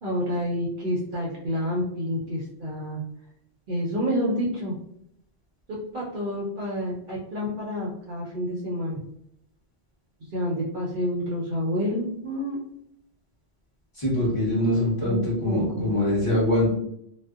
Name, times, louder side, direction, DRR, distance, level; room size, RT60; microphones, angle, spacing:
voice 1, 0.0-3.0 3.7-4.7 5.9-9.0 10.3-12.6 15.0-15.9, equal, 60° right, -5 dB, 0.6 m, -29 dB
voice 2, 13.9-16.8, left 1 dB, 30° left, -8 dB, 0.9 m, -23 dB
2.5 x 2.1 x 2.3 m, 0.73 s
omnidirectional pair, 1.2 m